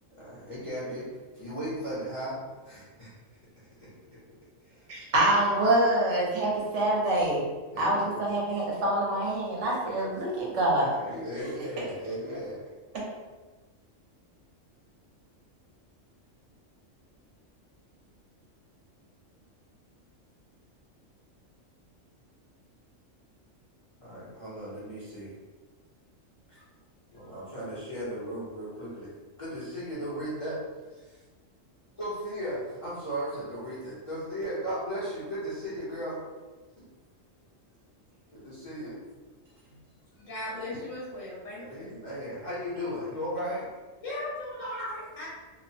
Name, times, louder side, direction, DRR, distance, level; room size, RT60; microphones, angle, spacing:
voice 1, 0.2-1.1 1.3-3.1 3.8-3.9 4.6-5.0 7.7-8.2 10.8-12.6 24.0-25.3 26.5-26.6 27.1-29.1 29.4-30.6 30.9-31.2 31.9-36.2 36.8-36.9 38.3-39.0 41.6-43.7 44.6-44.9, equal, 35° left, -10 dB, 0.5 m, -36 dB
voice 2, 4.9-7.4 7.8-10.9, right 1 dB, 65° right, -4 dB, 1.0 m, -25 dB
voice 3, 40.2-41.9 44.0-45.3, left 1 dB, 80° left, -7 dB, 1.3 m, -38 dB
2.8 x 2.1 x 2.6 m, 1.3 s
omnidirectional pair, 1.3 m